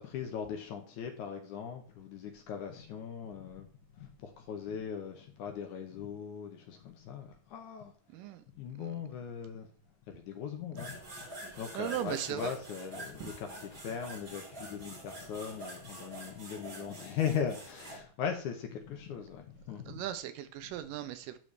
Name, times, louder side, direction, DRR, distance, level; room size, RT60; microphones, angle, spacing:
voice 1, 0.0-3.7 3.9-7.9 8.5-9.7 10.1-20.0, left 7 dB, 70° left, 2.1 m, -39 dB
voice 2, 8.1-8.4 8.8-8.9 11.5-12.5 13.2-13.3 19.9-21.4, right 12 dB, 80° right, 2.1 m, -38 dB
sound 1, 10.7-18.0, right 1 dB, 25° right, 2.5 m, -46 dB
12.0 x 4.0 x 3.2 m
omnidirectional pair, 4.1 m